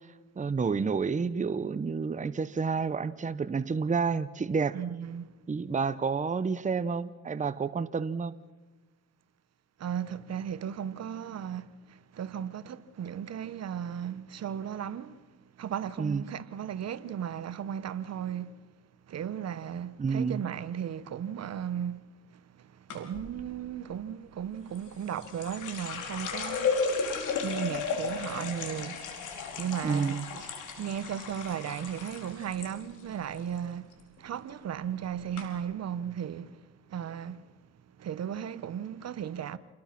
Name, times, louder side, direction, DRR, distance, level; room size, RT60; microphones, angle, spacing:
voice 1, 0.4-4.8 5.5-8.4 16.0-16.2 20.0-20.4 29.8-30.2, right 5 dB, 25° right, 0.9 m, -29 dB
voice 2, 4.7-5.3 9.8-15.3 15.6-18.6 19.1-26.9 27.4-37.5 38.0-39.6, right 9 dB, 60° right, 1.1 m, -36 dB
sound 1, 22.9-23.3 24.7-32.7 33.0-33.6 33.9-34.3 34.9-35.0 35.3-35.4, left 5 dB, 85° left, 4.3 m, -34 dB
28.0 x 20.5 x 6.0 m
cardioid pair, 90°, 30 cm